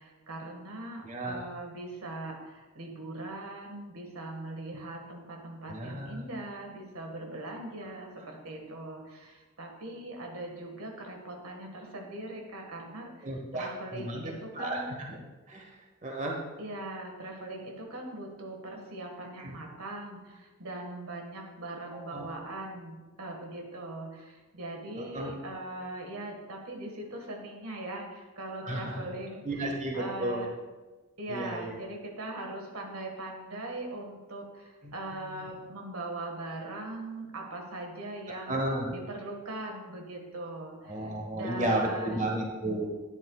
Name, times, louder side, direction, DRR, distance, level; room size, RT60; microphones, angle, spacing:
voice 1, 0.0-14.9 16.6-30.5 31.2-38.6 38.9-42.2, right 2 dB, 90° right, 2 dB, 1.8 m, -40 dB
voice 2, 1.0-1.5 5.7-6.2 13.2-15.2 15.5-15.7 16.0-16.4 19.4-19.5 21.9-22.3 25.0-25.4 28.6-28.9 29.4-30.4 31.3-31.7 34.8-35.4 38.5-38.9 40.8-42.9, right 1 dB, 35° right, 0 dB, 1.3 m, -33 dB
12.0 x 10.0 x 2.4 m, 1.2 s
head